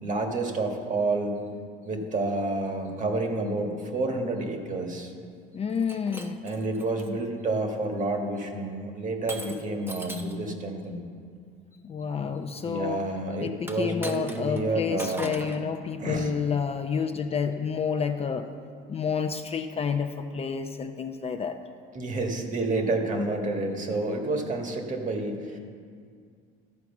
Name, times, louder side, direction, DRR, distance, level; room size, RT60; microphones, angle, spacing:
voice 1, 0.0-1.4 1.9-5.1 6.4-11.0 12.2-12.4 12.6-15.3 16.0-16.3 21.9-25.6, right 2 dB, 35° right, 3 dB, 1.5 m, -29 dB
voice 2, 5.5-6.4 11.8-13.0 13.4-18.5 18.9-21.6, left 6 dB, 30° left, 6 dB, 0.5 m, -29 dB
Shatter, 5.7-7.1 7.8-8.1 9.3-10.4 13.6-14.6 15.0-15.6, right 1 dB, 10° right, 0.8 m, -40 dB
13.0 x 4.7 x 7.1 m, 2.2 s
supercardioid pair, 100°, 21 cm